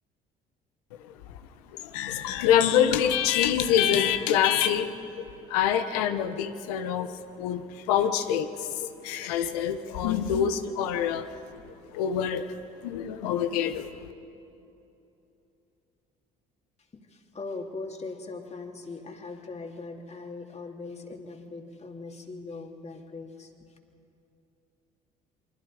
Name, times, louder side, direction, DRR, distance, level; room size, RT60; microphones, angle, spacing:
voice 1, 1.0-1.4 1.7-11.3 11.9-12.5 12.8-13.9, left 9 dB, 80° left, 10 dB, 1.2 m, -26 dB
voice 2, 16.9-23.7, left 3 dB, 35° left, 3 dB, 3.1 m, -40 dB
28.5 x 23.5 x 5.1 m, 2.9 s
hypercardioid pair, 60°, 20 cm